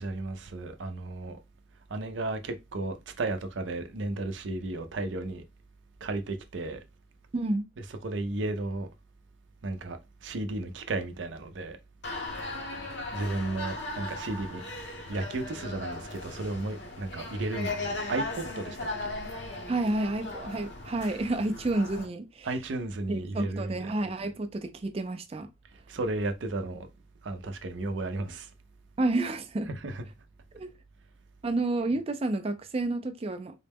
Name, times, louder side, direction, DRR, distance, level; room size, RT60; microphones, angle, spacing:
voice 1, 0.0-1.4 1.9-5.4 6.0-6.9 7.8-8.9 9.6-11.8 13.1-14.7 15.1-19.2 22.4-24.0 25.7-26.9 27.2-28.5 29.6-30.1, right 2 dB, 85° right, 0.6 m, -34 dB
voice 2, 7.3-7.7 19.7-22.5 23.1-25.5 29.0-29.7 30.5-30.7 31.4-33.6, right 2 dB, 30° right, 0.4 m, -30 dB
sound 1, 12.0-22.1, left 2 dB, 70° left, 0.9 m, -37 dB
3.9 x 2.1 x 3.4 m
head